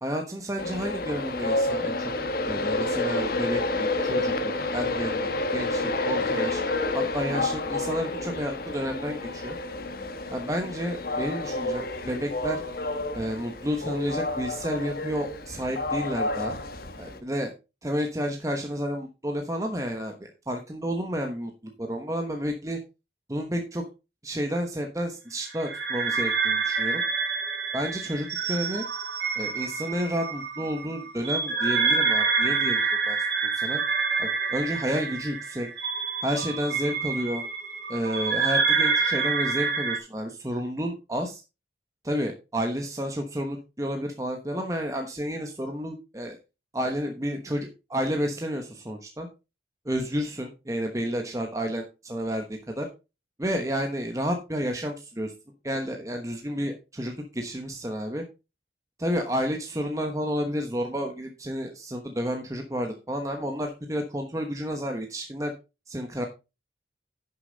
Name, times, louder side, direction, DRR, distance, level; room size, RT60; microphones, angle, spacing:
voice 1, 0.0-2.1 2.5-6.6 6.9-9.6 10.3-12.6 13.1-16.5 17.0-17.5 17.8-22.8 23.3-23.8 24.2-27.0 27.7-28.8 29.4-33.2 33.5-33.8 34.2-35.7 36.2-37.4 37.9-41.4 42.0-46.4 46.7-49.3 49.8-52.9 53.4-55.3 55.6-58.2 59.0-65.5 65.9-66.3, equal, 15° right, 3 dB, 1.0 m, -31 dB
Train, 0.6-17.2, left 2 dB, 50° left, 1.3 m, -29 dB
sound 1, 25.5-40.0, right 5 dB, 70° right, 2.5 m, -27 dB
10.5 x 6.8 x 3.9 m, 0.28 s
head